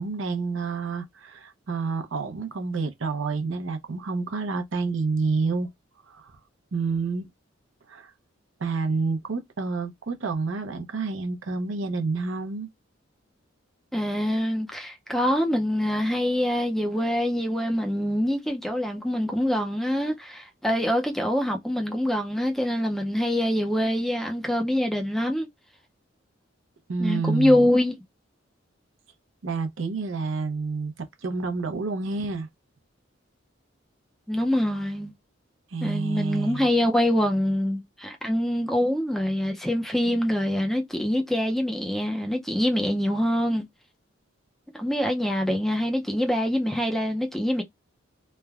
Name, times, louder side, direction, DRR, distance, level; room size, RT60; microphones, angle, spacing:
voice 1, 0.0-5.7 6.1-6.4 6.7-7.3 7.9-8.1 8.6-12.7 26.9-27.7 29.4-30.9 31.2-32.5 35.7-36.7, right 4 dB, 70° right, 0.6 m, -29 dB
voice 2, 13.9-25.5 27.0-28.0 34.3-35.1 35.8-43.7 44.7-47.6, left 1 dB, ahead, 0.5 m, -25 dB
3.1 x 2.1 x 2.3 m
head